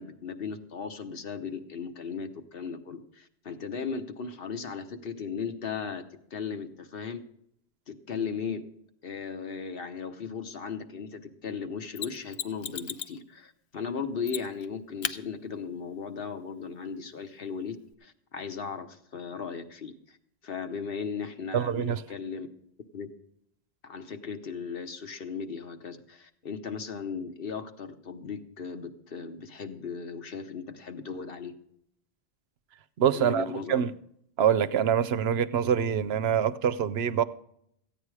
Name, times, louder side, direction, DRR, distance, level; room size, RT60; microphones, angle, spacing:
voice 1, 0.0-6.0 6.3-7.2 7.9-8.6 9.0-17.8 18.0-20.2 20.4-22.5 22.9-23.1 23.8-31.5 33.1-33.8, left 6 dB, 60° left, 8 dB, 1.2 m, -37 dB
Mechanisms, 12.0-13.2 14.3-14.7 15.0-15.2 17.9-18.0, left 9 dB, 85° left, 0.9 m, -35 dB
voice 2, 21.5-22.0 33.0-33.9 34.4-37.2, right 8 dB, 75° right, 13 dB, 0.9 m, -25 dB
14.0 x 9.1 x 4.8 m, 0.72 s
omnidirectional pair, 1.1 m